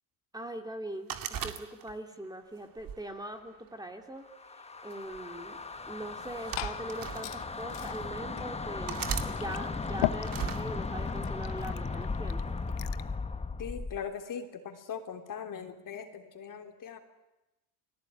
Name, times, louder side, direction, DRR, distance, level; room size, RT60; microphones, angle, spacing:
voice 1, 0.3-4.2 4.6-5.6 5.9-12.6, right 1 dB, 10° right, 4 dB, 2.7 m, -42 dB
sound 1, 1.1-2.2 2.8-3.9 4.9-5.2 6.2-7.2 7.9-8.0 8.9-9.3 10.2-10.6, right 8 dB, 45° right, 2.4 m, -37 dB
sound 2, 4.3-14.0, left 4 dB, 15° left, 1.4 m, -37 dB
Glass / Fill (with liquid), 6.1-13.1, left 18 dB, 65° left, 1.2 m, -40 dB
voice 2, 13.6-17.0, left 7 dB, 40° left, 5 dB, 3.4 m, -40 dB
29.0 x 18.5 x 9.6 m, 0.99 s
supercardioid pair, 100°, 48 cm